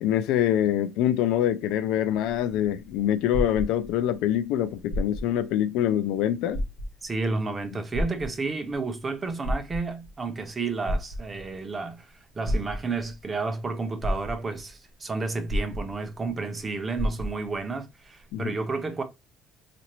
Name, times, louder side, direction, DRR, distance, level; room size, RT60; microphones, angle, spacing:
voice 1, 0.0-6.6 18.3-18.5, left 11 dB, 90° left, 0.3 m, -25 dB
sound 1, 2.8-4.2 4.8-5.5 5.9-6.0 6.5-7.2 7.9-8.8 9.3-10.1 10.9-11.6 12.4-13.1 13.7-13.8 14.0-14.7 15.5-16.3 16.6-16.7 17.0-17.6 18.3-18.4, equal, 55° left, 1.6 m, -30 dB
voice 2, 7.0-19.0, right 3 dB, 20° right, 0.6 m, -31 dB
4.1 x 2.5 x 3.0 m
cardioid pair, 160°, 0 cm